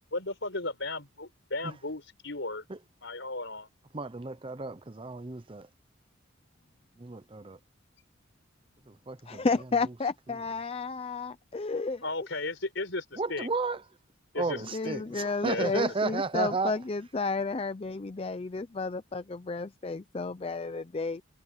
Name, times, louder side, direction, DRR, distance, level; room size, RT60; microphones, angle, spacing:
voice 1, 0.1-2.6 3.0-3.7 12.0-13.5 14.3-14.6 14.8-15.0 15.4-15.8 16.1-16.2, left 2 dB, 65° left, 5.6 m, -35 dB
voice 2, 3.9-5.7 7.0-7.6 8.9-9.5 9.8-9.9 13.2-13.8 14.4-16.8, right 3 dB, 25° right, 0.7 m, -33 dB
voice 3, 9.3-12.0 14.7-21.2, left 4 dB, 30° left, 0.5 m, -32 dB
head